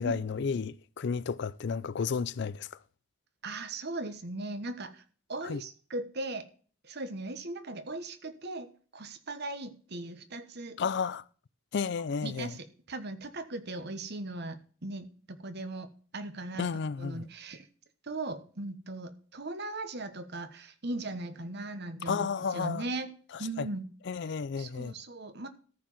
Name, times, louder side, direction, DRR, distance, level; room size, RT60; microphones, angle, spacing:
voice 1, 0.0-2.8 5.4-5.6 10.8-11.2 11.7-12.6 16.6-17.2 22.1-22.8 23.6-23.7 24.1-24.9, left 5 dB, 55° left, 0.4 m, -32 dB
voice 2, 3.4-5.0 5.3-6.5 6.8-10.8 12.2-16.7 17.0-17.7 18.0-23.1 23.4-23.9 24.6-25.5, right 2 dB, 50° right, 1.2 m, -38 dB
14.0 x 4.7 x 7.4 m
head